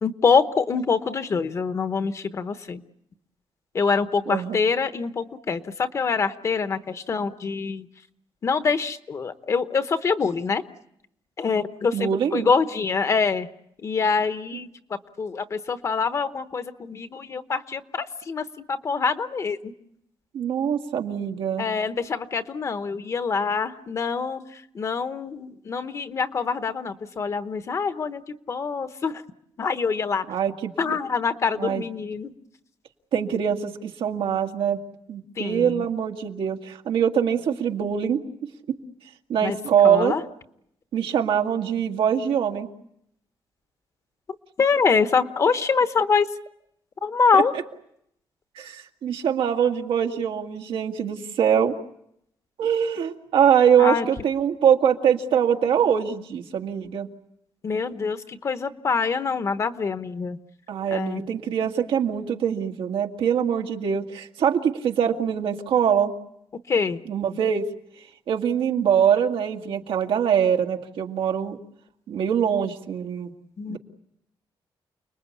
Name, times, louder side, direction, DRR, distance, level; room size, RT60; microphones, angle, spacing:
voice 1, 0.0-2.8 3.7-7.9 8.4-10.6 11.4-13.5 13.8-14.7 15.2-19.7 21.6-24.4 24.7-28.2 28.5-29.2 29.6-30.2 30.8-32.3 35.4-35.9 39.4-39.6 39.8-40.2 44.6-46.3 47.0-47.5 53.8-54.0 57.6-60.4 60.9-61.2 66.7-67.0 73.6-73.8, left 5 dB, 35° left, 11 dB, 1.0 m, -25 dB
voice 2, 4.3-4.6 11.9-12.5 20.3-21.7 30.3-31.0 31.6-31.8 33.1-34.8 35.1-38.2 38.7-38.8 39.3-40.1 40.9-42.7 47.3-47.6 48.6-51.8 52.6-57.1 60.7-66.1 67.1-67.7 68.3-71.6 72.1-73.3 73.7-73.8, right 8 dB, 85° right, 3 dB, 1.9 m, -23 dB
29.5 x 20.5 x 8.4 m, 0.78 s
wide cardioid pair, 180°, 9 cm